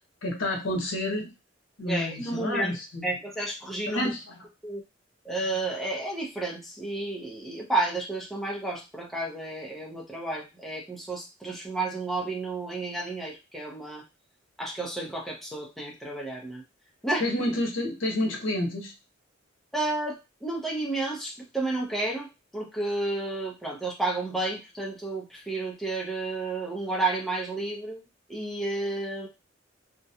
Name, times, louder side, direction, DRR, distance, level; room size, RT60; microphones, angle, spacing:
voice 1, 0.2-1.3 1.8-3.1 3.9-4.5 5.3-5.4 17.2-18.9, left 1 dB, 80° left, 1 dB, 0.8 m, -29 dB
voice 2, 1.8-2.7 3.0-4.1 4.6-4.8 5.2-14.0 14.6-16.6 17.0-17.3 19.7-22.3 22.5-28.0 28.3-29.3, right 2 dB, ahead, -3 dB, 0.6 m, -31 dB
2.4 x 2.2 x 2.7 m, 0.25 s
head